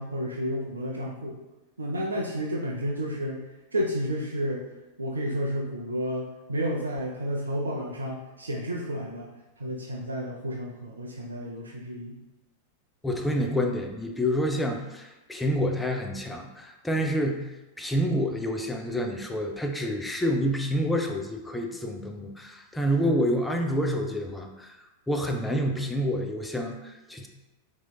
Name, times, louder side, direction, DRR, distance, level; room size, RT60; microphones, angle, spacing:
voice 1, 0.0-1.4 1.8-3.4 3.7-4.7 5.0-12.2, equal, 75° right, -1 dB, 0.3 m, -31 dB
voice 2, 13.0-17.4 17.8-24.7 25.1-27.3, equal, 5° left, 2 dB, 0.3 m, -28 dB
4.1 x 2.7 x 2.3 m, 1.0 s
figure-of-eight pair, 90°, 0 cm